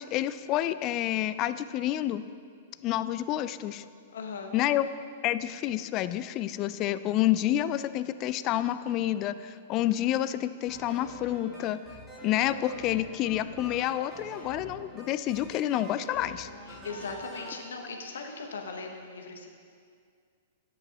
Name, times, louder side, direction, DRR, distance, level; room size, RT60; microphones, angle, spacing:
voice 1, 0.0-2.2 2.8-3.8 4.5-4.9 5.2-11.8 12.2-16.5, left 13 dB, 35° left, 14 dB, 0.3 m, -29 dB
voice 2, 4.1-4.5 16.7-19.5, left 4 dB, 70° left, 3 dB, 1.0 m, -39 dB
sound 1, 10.7-17.6, equal, 10° right, 2.2 m, -45 dB
10.5 x 8.6 x 2.9 m, 2.2 s
figure-of-eight pair, 105°, 0 cm